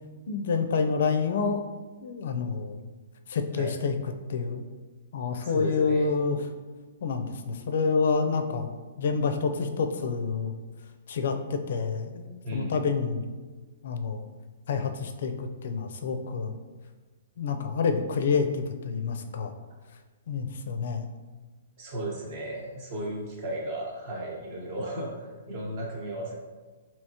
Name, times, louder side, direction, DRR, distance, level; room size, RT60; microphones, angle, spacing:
voice 1, 0.3-1.6 2.0-2.8 3.3-4.6 5.1-6.4 7.0-10.5 11.1-13.3 13.8-14.3 14.7-16.6 17.4-19.5 20.3-21.1, left 5 dB, 65° left, 6 dB, 0.4 m, -28 dB
voice 2, 5.4-6.1 12.4-12.8 21.8-26.3, right 1 dB, 40° right, -2 dB, 0.9 m, -35 dB
3.4 x 2.8 x 2.8 m, 1.3 s
hypercardioid pair, 155°, 0 cm